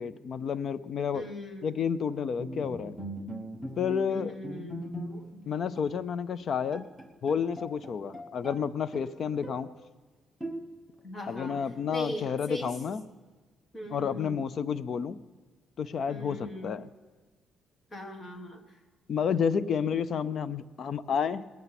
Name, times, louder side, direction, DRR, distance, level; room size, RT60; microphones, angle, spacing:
voice 1, 0.0-1.2 1.6-2.9 3.8-4.3 5.5-6.9 7.2-9.7 11.3-13.0 13.9-15.2 15.8-16.9 19.1-21.5, left 7 dB, 45° left, 14 dB, 0.5 m, -30 dB
voice 2, 1.1-1.7 4.1-4.8 11.0-11.6 11.9-12.8 13.7-14.4 16.1-16.9 17.9-18.6, left 1 dB, 20° left, 3 dB, 1.5 m, -39 dB
Bowed string instrument, 2.4-5.4 5.8-6.0 6.4-6.5 6.7-8.6 8.9-9.7 10.4-11.0, right 1 dB, 5° left, 1.1 m, -40 dB
19.5 x 9.5 x 5.9 m, 1.4 s
cardioid pair, 155°, 0 cm